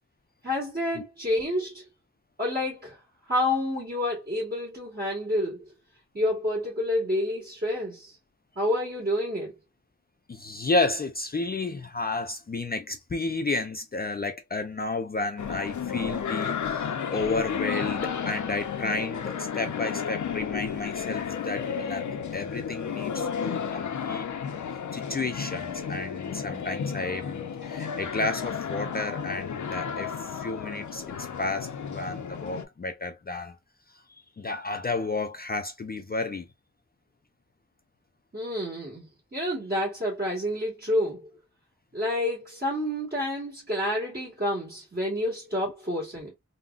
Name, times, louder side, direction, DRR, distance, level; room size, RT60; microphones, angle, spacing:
voice 1, 0.4-1.8 2.4-5.7 6.1-8.2 8.6-9.5 38.3-41.3 41.9-46.3, left 1 dB, 35° right, 1.8 m, -29 dB
voice 2, 10.3-22.1 22.3-24.3 24.9-33.6 33.9-34.0 34.4-36.5, left 3 dB, 35° left, 0.4 m, -32 dB
sound 1, 15.4-32.7, left 7 dB, 90° left, 0.5 m, -33 dB
3.6 x 2.1 x 2.4 m
wide cardioid pair, 100°, 29 cm